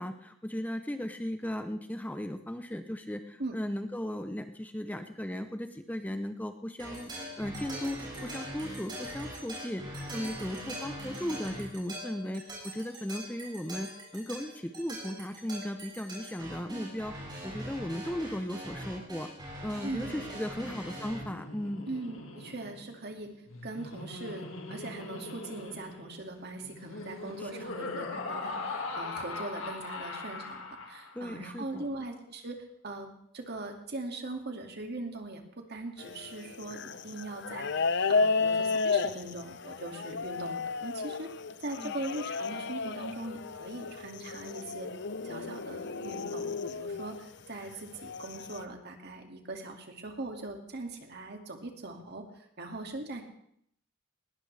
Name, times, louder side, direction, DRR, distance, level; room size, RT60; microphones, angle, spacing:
voice 1, 0.0-7.1 7.4-9.8 10.1-17.1 17.4-19.3 19.6-21.8 27.4-27.5 28.1-28.2 31.1-31.9 41.8-41.9, left 1 dB, 10° left, 8 dB, 0.7 m, -36 dB
sound 1, 6.8-21.2, right 1 dB, 20° right, 7.7 m, -42 dB
voice 2, 19.8-20.6 21.9-23.3 23.6-33.1 33.3-35.4 35.7-41.3 41.6-44.9 45.2-53.2, right 2 dB, 55° right, 3 dB, 2.2 m, -41 dB
Laughter, 20.8-31.3, left 3 dB, 85° left, 2.0 m, -41 dB
sound 2, 36.0-47.2 47.9-48.6, left 4 dB, 60° left, 0.7 m, -33 dB
19.5 x 18.5 x 3.4 m, 0.70 s
head